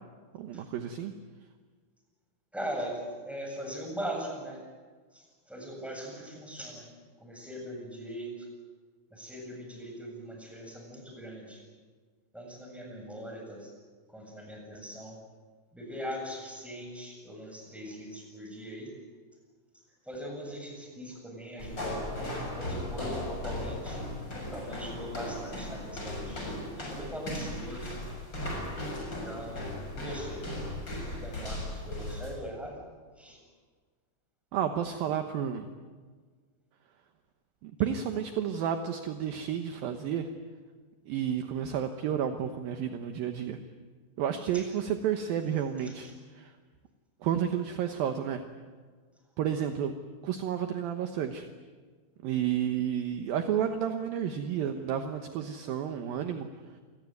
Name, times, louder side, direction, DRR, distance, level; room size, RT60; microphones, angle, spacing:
voice 1, 0.3-1.1 34.5-35.7 37.6-40.3 41.1-43.6 44.2-46.1 46.4-46.5 47.2-48.4 49.4-49.9 50.2-51.5 52.2-56.5, right 9 dB, 70° right, 6 dB, 2.5 m, -31 dB
voice 2, 2.5-4.6 5.1-6.9 7.2-8.5 9.1-11.6 12.3-13.7 14.1-15.2 15.7-18.9 20.0-22.1 22.5-24.0 24.5-28.0 29.0-30.5 31.1-32.8 33.2-33.4 44.5-44.7 45.8-46.1, equal, ahead, 0 dB, 7.4 m, -40 dB
sound 1, 21.6-32.3, left 1 dB, 25° left, 7.1 m, -37 dB
28.5 x 19.5 x 9.5 m, 1.5 s
omnidirectional pair, 5.2 m